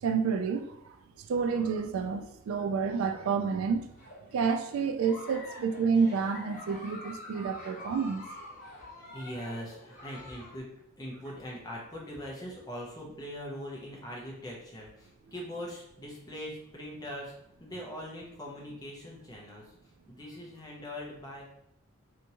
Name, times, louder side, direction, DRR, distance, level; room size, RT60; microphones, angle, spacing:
voice 1, 0.0-1.0 1.3-3.9 4.3-8.3, right 5 dB, 70° right, 8 dB, 0.3 m, -29 dB
Giggle, 3.9-10.6, left 1 dB, 40° left, 1.1 m, -46 dB
voice 2, 9.1-10.7 11.0-17.3 17.6-19.7 20.1-21.4, equal, 15° left, -3 dB, 0.7 m, -41 dB
3.4 x 2.8 x 2.8 m, 0.75 s
head